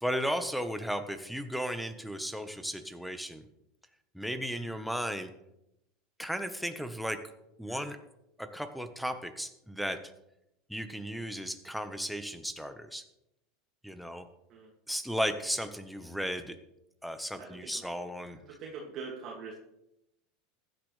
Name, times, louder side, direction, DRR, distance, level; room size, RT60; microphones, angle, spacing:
voice 1, 0.0-3.4 4.1-5.3 6.2-7.2 7.6-8.0 8.4-10.0 10.7-13.0 13.8-14.2 14.9-16.6 17.0-18.4, equal, ahead, 8 dB, 1.3 m, -35 dB
voice 2, 17.4-17.8 18.3-19.5, right 5 dB, 50° right, -2 dB, 2.4 m, -43 dB
15.5 x 10.5 x 3.4 m, 0.85 s
hypercardioid pair, 90°, 0 cm